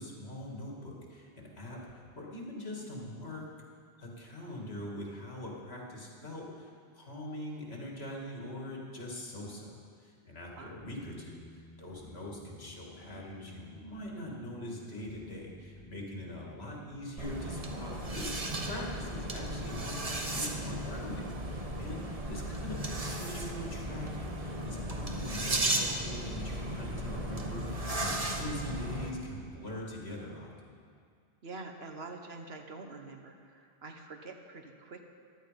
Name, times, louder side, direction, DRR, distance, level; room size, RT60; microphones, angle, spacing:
voice 1, 0.0-3.5 4.0-30.5, left 1 dB, 75° left, -2 dB, 2.7 m, -43 dB
sound 1, 10.6-29.3, left 1 dB, ahead, 4.1 m, -54 dB
sound 2, 17.2-29.1, right 1 dB, 35° right, 1.2 m, -35 dB
voice 2, 31.4-35.0, right 3 dB, 70° right, 4 dB, 1.4 m, -46 dB
15.0 x 11.5 x 5.2 m, 2.3 s
omnidirectional pair, 1.1 m